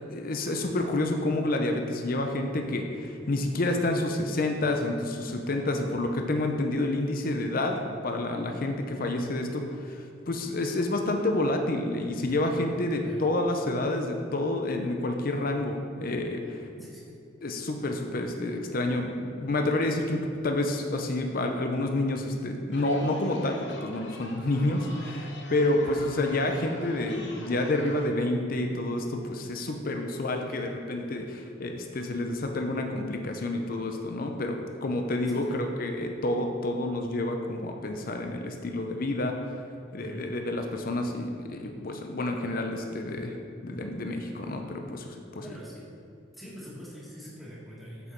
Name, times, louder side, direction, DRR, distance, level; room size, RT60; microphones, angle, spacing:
voice 1, 0.1-7.8 8.0-16.6 17.4-39.3 39.9-43.3 43.6-45.1 45.4-45.5, left 2 dB, 50° left, 4 dB, 0.6 m, -29 dB
voice 2, 16.8-17.2 25.8-26.0 35.3-35.7 40.0-40.2 45.4-46.0 46.3-48.1, equal, ahead, -8 dB, 1.8 m, -45 dB
Chatter, 22.7-28.0, left 2 dB, 70° left, 1.0 m, -45 dB
7.3 x 6.8 x 4.5 m, 2.6 s
head